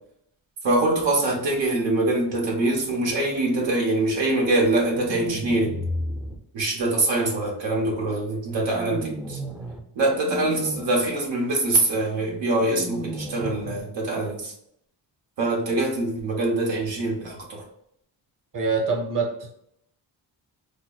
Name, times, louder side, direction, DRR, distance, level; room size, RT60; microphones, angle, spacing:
voice 1, 0.6-5.8 6.5-9.4 9.9-14.5 15.4-17.6, right 2 dB, 90° right, -1 dB, 1.0 m, -24 dB
sound 1, 4.9-6.4 8.7-9.8 10.1-10.8 12.6-13.8, right 1 dB, 5° right, 0.5 m, -33 dB
voice 2, 18.5-19.5, right 4 dB, 45° right, 1 dB, 1.0 m, -25 dB
5.1 x 2.1 x 2.3 m, 0.72 s
cardioid pair, 80°, 44 cm